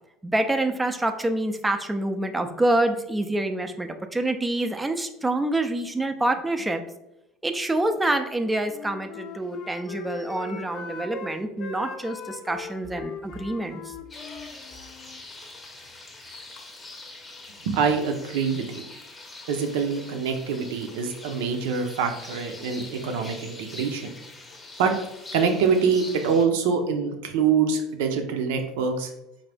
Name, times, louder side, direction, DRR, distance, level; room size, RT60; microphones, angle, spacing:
voice 1, 0.2-6.8 7.4-13.9, right 1 dB, 10° right, 7 dB, 0.4 m, -26 dB
Wind instrument woodwind instrument, 8.6-11.3 11.6-15.2, left 5 dB, 55° left, 0.4 m, -40 dB
sound 1, 14.1-26.5, left 2 dB, 20° left, 0.7 m, -43 dB
voice 2, 17.6-18.8 19.5-24.1 24.8-24.9 25.3-29.1, right 5 dB, 85° right, 5 dB, 0.6 m, -25 dB
3.8 x 2.6 x 3.4 m, 0.86 s
supercardioid pair, 110°, 0 cm